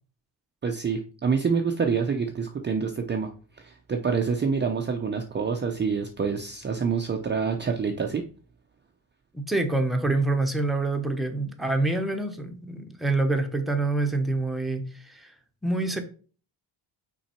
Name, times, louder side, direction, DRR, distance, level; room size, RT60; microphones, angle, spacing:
voice 1, 0.6-3.3 3.6-8.2, right 5 dB, 25° right, 3 dB, 0.6 m, -27 dB
voice 2, 9.3-15.3 15.6-16.0, right 2 dB, ahead, 4 dB, 0.9 m, -26 dB
5.8 x 4.5 x 4.4 m, 0.40 s
cardioid pair, 135°, 43 cm